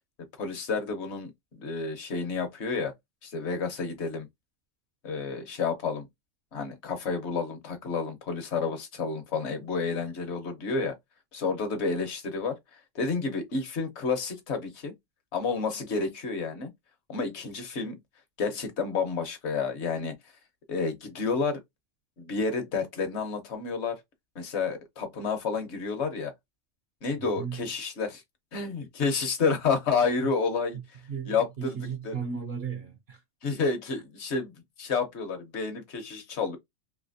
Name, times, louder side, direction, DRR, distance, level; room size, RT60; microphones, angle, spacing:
voice 1, 0.4-1.3 1.6-2.9 3.2-4.3 5.0-6.1 6.5-11.0 11.3-12.6 12.9-14.9 15.3-16.7 17.1-18.0 18.4-20.1 20.7-21.6 22.2-24.0 24.3-26.3 27.0-28.2 28.5-30.8 31.2-32.1 33.4-34.5 34.8-36.6, left 4 dB, 65° left, 1.2 m, -30 dB
voice 2, 27.2-27.6 31.1-33.2, right 6 dB, 60° right, 0.8 m, -35 dB
3.3 x 2.7 x 2.6 m
omnidirectional pair, 1.3 m